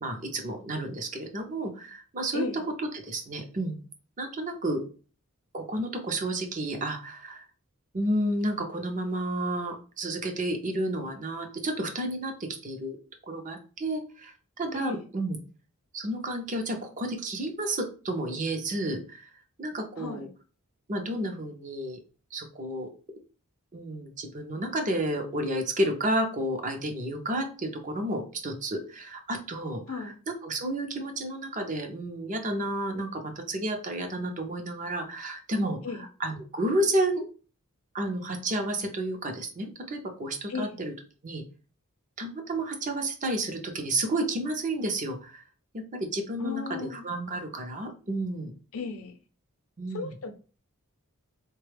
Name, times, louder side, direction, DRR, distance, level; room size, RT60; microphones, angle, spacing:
voice 1, 0.0-3.8 4.2-4.8 5.5-7.4 7.9-13.0 13.3-15.4 15.9-19.3 19.6-20.3 20.9-22.0 22.3-22.9 23.7-35.8 36.2-37.2 37.9-40.9 41.2-41.4 42.2-45.4 45.7-48.5 49.8-50.1, right 1 dB, 35° right, 0.6 m, -31 dB
voice 2, 14.7-15.0 20.0-20.3 29.9-30.2 35.8-36.0 40.5-40.8 46.4-47.0 48.7-49.1 49.9-50.3, left 4 dB, 65° left, 0.6 m, -35 dB
4.1 x 2.2 x 3.3 m
head